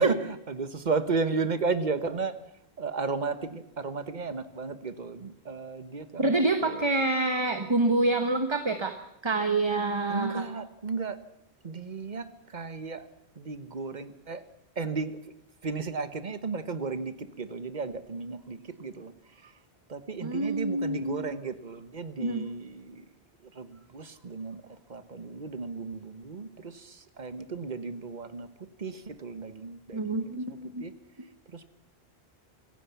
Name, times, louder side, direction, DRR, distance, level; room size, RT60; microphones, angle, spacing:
voice 1, 0.0-2.4 2.8-6.8 10.1-11.2 11.6-13.1 13.4-14.4 14.8-15.2 15.6-19.1 19.4-19.5 19.9-23.1 23.5-28.5 28.8-30.9 31.5-31.7, right 4 dB, 45° right, 12 dB, 1.3 m, -34 dB
voice 2, 6.2-8.9 9.2-10.5 20.2-21.2 22.2-22.5 29.9-30.8, right 2 dB, 25° right, 7 dB, 1.2 m, -27 dB
24.0 x 16.0 x 7.1 m, 0.84 s
omnidirectional pair, 1.1 m